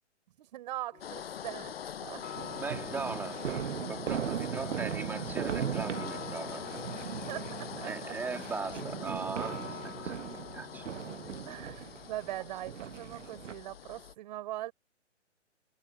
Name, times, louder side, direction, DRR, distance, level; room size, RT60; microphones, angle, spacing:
voice 1, 0.4-1.8 2.0-2.4 4.5-4.7 7.1-8.4 11.4-14.7, right 14 dB, 35° right, 5.2 m, -41 dB
sound 1, 0.9-12.1, left 6 dB, 75° left, 6.6 m, -50 dB
sound 2, 1.0-14.1, left 9 dB, 55° left, 7.2 m, -44 dB
sound 3, 2.3-13.5, right 8 dB, 75° right, 1.0 m, -38 dB
voice 2, 2.6-7.1 7.8-10.9, right 5 dB, 5° right, 2.0 m, -39 dB
hypercardioid pair, 155°, 37 cm